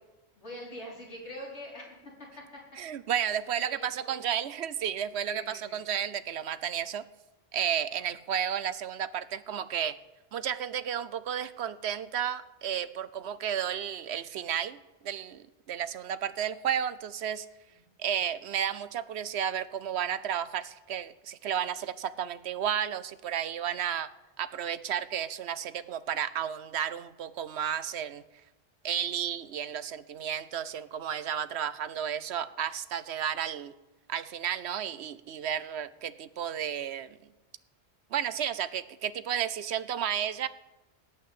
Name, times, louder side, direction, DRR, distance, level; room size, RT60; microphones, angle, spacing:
voice 1, 0.4-2.0 3.6-4.3 5.3-5.8 7.9-8.1 17.8-17.9, equal, 75° left, -4 dB, 4.8 m, -44 dB
voice 2, 2.8-7.0 7.5-10.0 10.3-14.8 15.0-17.5 18.0-24.1 24.4-28.2 28.8-33.7 34.1-37.2 38.1-40.5, right 9 dB, 70° right, 15 dB, 0.9 m, -32 dB
18.0 x 6.0 x 8.6 m, 1.0 s
omnidirectional pair, 1.2 m